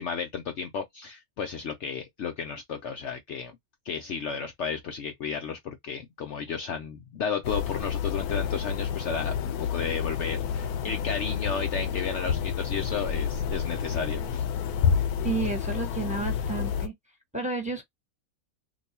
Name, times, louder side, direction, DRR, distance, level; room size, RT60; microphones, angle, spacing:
voice 1, 0.0-3.5 3.9-14.4, left 6 dB, 65° left, 0.8 m, -33 dB
sound 1, 7.4-16.9, left 7 dB, 85° left, 1.1 m, -29 dB
voice 2, 15.2-16.9 17.3-17.8, right 4 dB, 5° right, 1.1 m, -31 dB
2.9 x 2.3 x 4.1 m
omnidirectional pair, 1.5 m